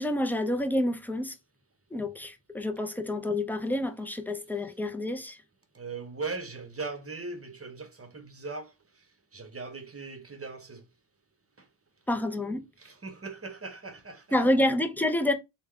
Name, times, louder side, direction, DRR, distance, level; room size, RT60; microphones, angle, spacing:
voice 1, 0.0-1.3 1.9-5.4 12.1-12.6 14.3-15.3, left 1 dB, 5° left, 0.5 m, -28 dB
voice 2, 5.7-9.1 9.3-10.8 11.6-11.7 12.8-14.3, right 3 dB, 30° right, 0.8 m, -39 dB
3.4 x 2.3 x 3.6 m
wide cardioid pair, 70°, 49 cm